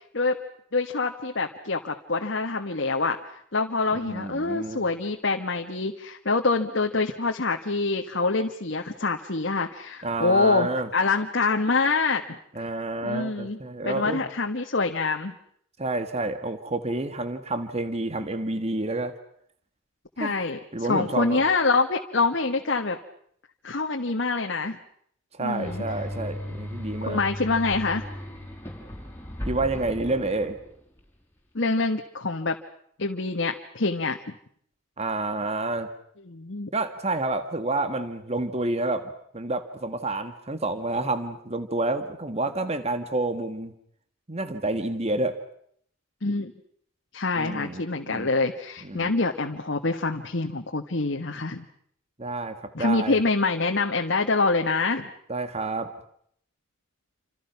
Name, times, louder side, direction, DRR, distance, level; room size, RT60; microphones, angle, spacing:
voice 1, 0.7-12.4 13.0-13.6 13.8-15.4 20.2-23.0 23.6-24.8 25.4-25.8 27.1-28.0 31.5-32.5 33.0-34.2 36.3-36.7 46.2-46.5 47.1-51.6 52.7-55.1, left 3 dB, 60° left, 3 dB, 1.6 m, -25 dB
voice 2, 3.9-4.8 10.0-10.9 12.5-14.3 15.8-19.1 20.2-20.4 20.7-21.4 25.3-27.2 29.5-30.5 35.0-35.9 36.7-43.7 44.3-45.4 47.4-48.3 48.8-49.1 52.2-53.2 55.3-55.9, right 2 dB, 30° right, 10 dB, 1.7 m, -29 dB
sound 1, 25.6-31.0, left 1 dB, 10° left, 5.6 m, -36 dB
29.0 x 27.0 x 6.0 m, 0.66 s
head